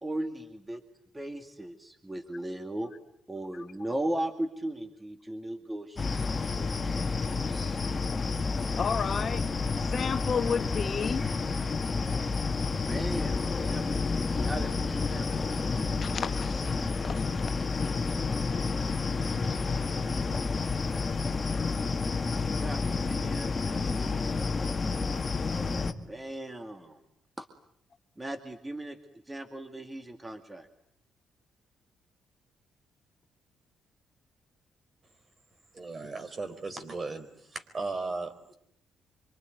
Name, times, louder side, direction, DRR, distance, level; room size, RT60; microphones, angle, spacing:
voice 1, 0.0-0.8 1.1-2.9 3.3-7.8 12.9-14.1 14.4-16.2 22.6-24.7 26.1-27.0 27.4-27.5 28.2-30.7, right 1 dB, 15° right, 7 dB, 2.3 m, -38 dB
sound 1, 6.0-25.9, left 4 dB, 30° left, 1.9 m, -30 dB
voice 2, 8.7-9.4 9.8-11.2 16.0-16.7 17.0-17.5, left 6 dB, 45° left, 9 dB, 1.3 m, -32 dB
voice 3, 35.7-38.5, right 3 dB, 35° right, 9 dB, 4.4 m, -36 dB
25.5 x 25.0 x 9.4 m, 0.71 s
cardioid pair, 90°, 0 cm